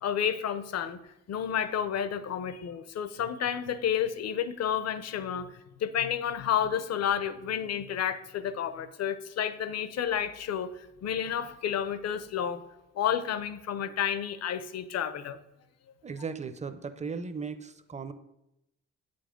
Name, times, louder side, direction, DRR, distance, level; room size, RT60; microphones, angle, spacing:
voice 1, 0.0-1.0 1.3-5.5 5.8-10.7 11.0-12.6 13.0-15.4, left 9 dB, 55° left, 13 dB, 0.7 m, -30 dB
voice 2, 16.0-18.1, right 5 dB, 25° right, 11 dB, 0.6 m, -37 dB
8.4 x 5.3 x 5.1 m, 0.87 s
cardioid pair, 90°, 30 cm